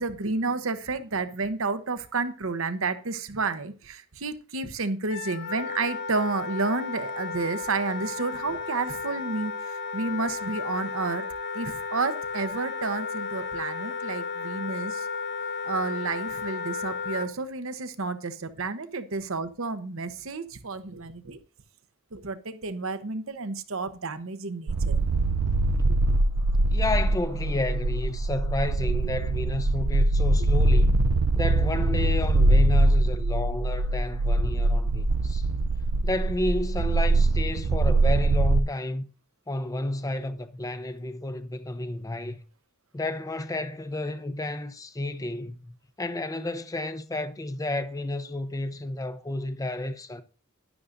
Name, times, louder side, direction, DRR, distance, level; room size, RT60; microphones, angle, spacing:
voice 1, 0.0-11.2 11.5-15.1 15.6-21.4 22.1-25.0 25.9-26.0 37.9-38.0, right 3 dB, 65° right, 0.9 m, -31 dB
Wind instrument woodwind instrument, 5.1-17.3, left 4 dB, 50° left, 0.9 m, -34 dB
sound 1, 24.7-38.6, right 2 dB, 85° right, 0.5 m, -23 dB
voice 2, 26.7-30.9 31.4-35.4 36.0-39.1 39.5-42.4 42.9-50.2, left 2 dB, 15° left, 0.6 m, -31 dB
12.0 x 11.0 x 2.6 m
head